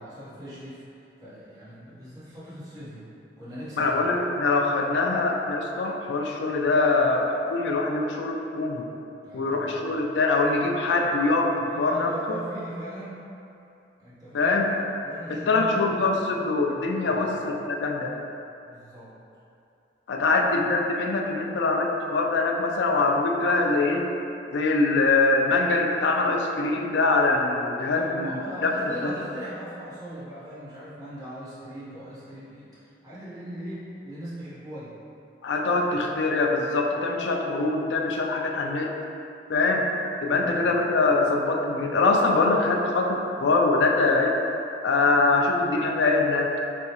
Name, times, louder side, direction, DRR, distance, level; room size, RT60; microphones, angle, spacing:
voice 1, 0.0-3.1 3.4-4.1 9.2-9.8 11.6-13.2 14.0-14.6 15.0-16.1 17.1-17.3 18.6-19.1 20.2-20.8 27.9-35.0 40.3-40.7, right 1 dB, 20° right, -12 dB, 1.1 m, -40 dB
voice 2, 3.8-8.8 9.3-12.4 14.3-14.7 15.3-18.1 20.1-24.1 24.5-29.1 35.4-38.9 39.5-39.9 40.2-44.4 44.8-46.5, left 3 dB, 80° left, 2 dB, 0.4 m, -23 dB
5.0 x 2.3 x 2.8 m, 2.7 s
head